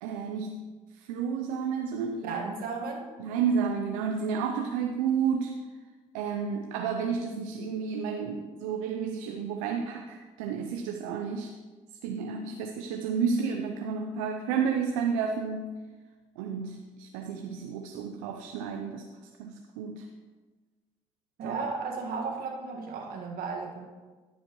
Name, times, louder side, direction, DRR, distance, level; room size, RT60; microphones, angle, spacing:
voice 1, 0.0-0.7 1.0-2.4 3.2-5.6 6.1-11.5 12.0-15.8 16.4-19.1 19.4-20.1 21.4-21.6, right 6 dB, 80° right, 4 dB, 0.6 m, -31 dB
voice 2, 2.2-3.1 21.4-23.9, right 4 dB, 65° right, 0 dB, 1.7 m, -34 dB
14.5 x 5.2 x 3.1 m, 1.3 s
hypercardioid pair, 55°, 16 cm